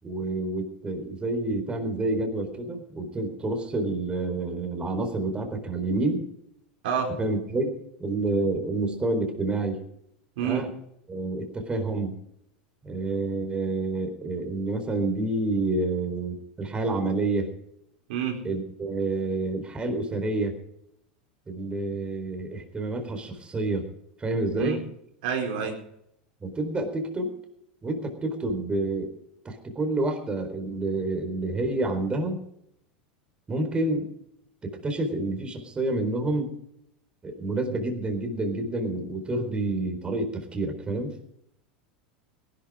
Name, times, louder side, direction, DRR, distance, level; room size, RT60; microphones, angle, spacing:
voice 1, 0.0-6.2 7.2-7.7 8.0-9.8 10.4-10.7 11.1-12.1 12.8-17.5 18.4-20.6 21.5-23.9 24.2-24.8 26.4-27.3 27.8-29.1 29.4-32.4 33.5-34.1 34.6-36.5 37.2-41.1, right 2 dB, 20° right, 5 dB, 4.2 m, -28 dB
voice 2, 25.2-25.8, right 7 dB, 70° right, 1 dB, 4.5 m, -28 dB
17.5 x 12.0 x 5.0 m, 0.74 s
hypercardioid pair, 95°, 5 cm